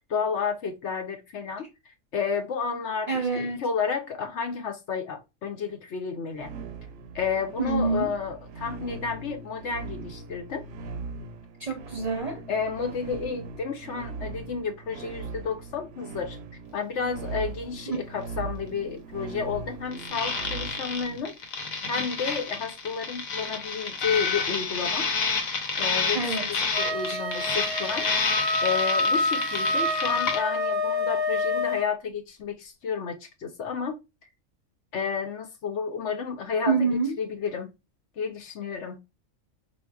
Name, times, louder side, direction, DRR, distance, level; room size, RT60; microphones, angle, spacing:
voice 1, 0.1-1.7 2.1-6.5 7.1-10.6 12.5-16.4 16.7-21.3 21.9-25.1 25.8-26.2 26.5-28.1 28.6-34.0 34.9-37.7 38.2-39.0, left 6 dB, 65° left, 0.9 m, -31 dB
voice 2, 3.1-3.6 7.6-8.1 11.6-12.4 17.9-18.0 26.1-26.6 27.0-27.2 36.7-37.1, right 4 dB, 40° right, 0.6 m, -27 dB
sound 1, 6.4-21.2, right 4 dB, 70° right, 0.8 m, -40 dB
sound 2, 19.9-30.4, left 4 dB, 85° left, 1.3 m, -29 dB
Wind instrument woodwind instrument, 26.7-31.9, left 2 dB, 30° left, 1.2 m, -27 dB
4.3 x 2.5 x 2.2 m
omnidirectional pair, 1.4 m